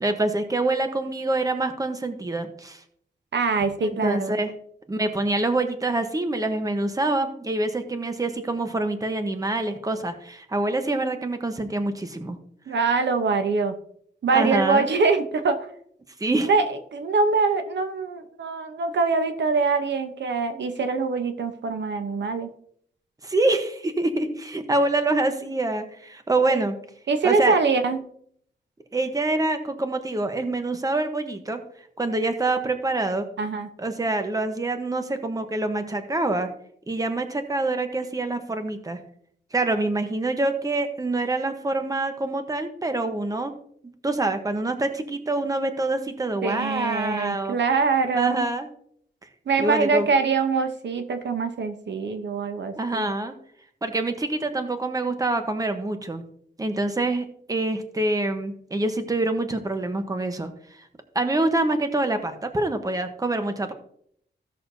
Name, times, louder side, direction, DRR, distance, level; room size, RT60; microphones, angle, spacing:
voice 1, 0.0-2.8 3.8-4.5 4.9-12.4 14.3-14.9 16.2-16.5 23.2-26.7 27.2-27.6 28.9-31.6 32.0-33.2 33.8-36.5 36.9-39.0 39.5-43.5 44.0-47.6 48.2-48.7 49.6-50.1 52.8-53.3 53.8-56.2 56.6-60.5 61.1-63.7, right 2 dB, 20° right, 7 dB, 1.0 m, -26 dB
voice 2, 3.3-4.4 12.7-13.8 14.2-15.7 16.4-22.5 26.5-26.6 27.1-28.0 33.4-33.7 46.4-48.4 49.5-53.1, right 4 dB, 80° right, 7 dB, 0.9 m, -24 dB
15.5 x 6.5 x 2.7 m, 0.65 s
wide cardioid pair, 130°, 18 cm